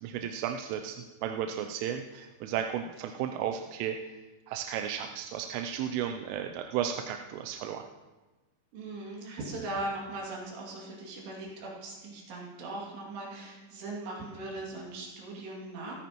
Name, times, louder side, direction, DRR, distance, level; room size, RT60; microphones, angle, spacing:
voice 1, 0.0-4.2 4.5-7.8, right 9 dB, 90° right, 5 dB, 3.2 m, -34 dB
voice 2, 8.7-16.0, right 2 dB, 60° right, -3 dB, 4.5 m, -39 dB
27.0 x 9.2 x 3.0 m, 1.2 s
omnidirectional pair, 5.5 m